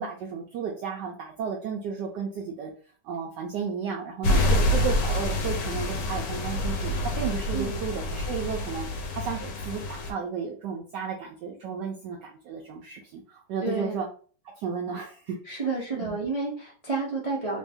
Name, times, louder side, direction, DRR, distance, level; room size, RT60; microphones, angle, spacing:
voice 1, 0.0-2.7 3.0-8.9 9.1-14.1 14.6-15.6 16.0-16.1, right 6 dB, 75° right, 0 dB, 1.0 m, -33 dB
sound 1, 4.2-10.1, left 1 dB, 65° left, 1.2 m, -27 dB
voice 2, 4.3-4.6 7.5-7.8 13.6-13.9 15.4-17.6, right 3 dB, 45° right, -5 dB, 0.4 m, -30 dB
3.3 x 2.6 x 3.5 m, 0.43 s
omnidirectional pair, 2.3 m